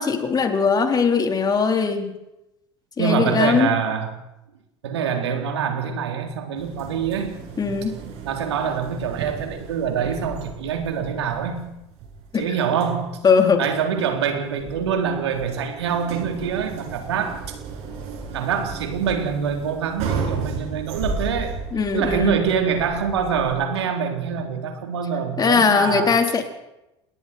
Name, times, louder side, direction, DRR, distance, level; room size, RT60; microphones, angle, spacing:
voice 1, 0.0-2.1 3.0-3.7 7.6-8.0 12.3-12.5 13.2-13.6 21.7-22.4 25.4-26.4, left 5 dB, 30° left, 4 dB, 4.2 m, -20 dB
voice 2, 3.0-4.1 4.8-7.4 8.2-11.6 12.4-13.2 13.6-17.6 18.3-21.5 21.9-26.1, right 7 dB, 75° right, 4 dB, 3.8 m, -25 dB
sound 1, 6.6-23.5, right 5 dB, 55° right, 8.0 m, -34 dB
29.0 x 21.0 x 4.6 m, 0.91 s
hypercardioid pair, 75°, 14 cm